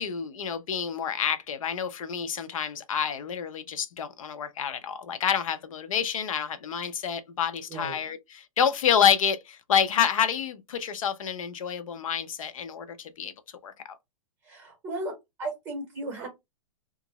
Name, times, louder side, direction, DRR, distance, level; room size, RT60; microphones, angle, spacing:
voice 1, 0.0-13.3 13.6-13.7, left 8 dB, 75° left, 0.6 m, -28 dB
voice 2, 14.4-15.1 15.4-16.3, right 2 dB, 10° right, 1.6 m, -35 dB
2.9 x 2.5 x 2.8 m
hypercardioid pair, 175°, 17 cm